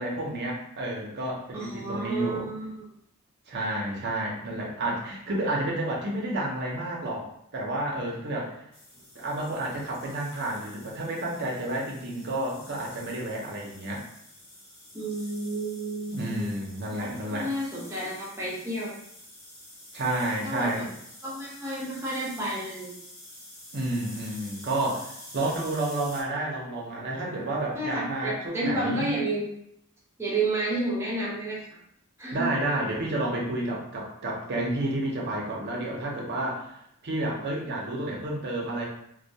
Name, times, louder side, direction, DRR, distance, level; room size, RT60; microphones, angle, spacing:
voice 1, 0.0-2.5 3.5-8.6 9.1-14.0 16.1-17.5 19.9-20.9 23.7-29.1 32.3-38.8, right 1 dB, 50° right, -2 dB, 0.6 m, -30 dB
voice 2, 1.5-2.9 14.9-16.5 16.9-18.9 20.4-20.9 21.2-23.0 27.7-29.5 30.2-31.6 32.2-32.5, right 2 dB, 10° right, -7 dB, 0.7 m, -31 dB
sound 1, 8.7-26.2, left 1 dB, 60° left, 1.1 m, -48 dB
2.2 x 2.2 x 2.6 m, 0.74 s
head